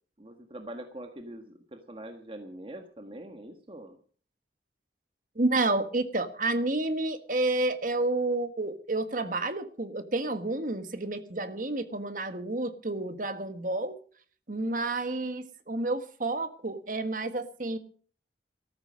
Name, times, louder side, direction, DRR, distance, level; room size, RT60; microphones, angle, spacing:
voice 1, 0.2-4.0, right 1 dB, 30° right, 5 dB, 1.5 m, -43 dB
voice 2, 5.3-14.0 14.5-17.8, right 2 dB, 45° right, 10 dB, 1.5 m, -30 dB
14.0 x 12.5 x 6.3 m, 0.44 s
head